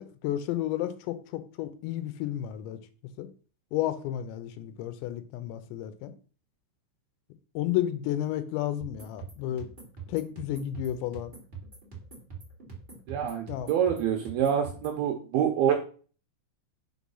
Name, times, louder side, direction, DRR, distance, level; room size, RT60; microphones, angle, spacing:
voice 1, 0.0-2.8 3.2-3.3 3.7-6.1 7.6-9.7 10.1-11.3 13.5-13.7, left 12 dB, 80° left, 2.8 m, -32 dB
sound 1, 8.8-15.0, right 5 dB, 25° right, 1.2 m, -45 dB
voice 2, 13.1-15.8, right 9 dB, 75° right, 2.3 m, -26 dB
6.1 x 4.4 x 5.4 m
omnidirectional pair, 5.2 m